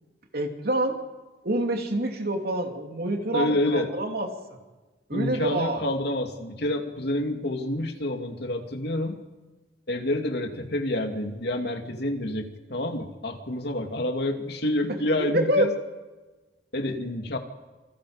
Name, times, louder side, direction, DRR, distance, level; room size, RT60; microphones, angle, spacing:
voice 1, 0.3-1.0 1.4-4.6 5.1-5.8 15.3-15.7, right 1 dB, 60° right, 3 dB, 2.9 m, -26 dB
voice 2, 3.3-3.9 5.1-9.2 9.9-15.7 16.7-17.4, left 1 dB, 65° left, 4 dB, 2.6 m, -28 dB
27.5 x 25.5 x 5.1 m, 1.2 s
head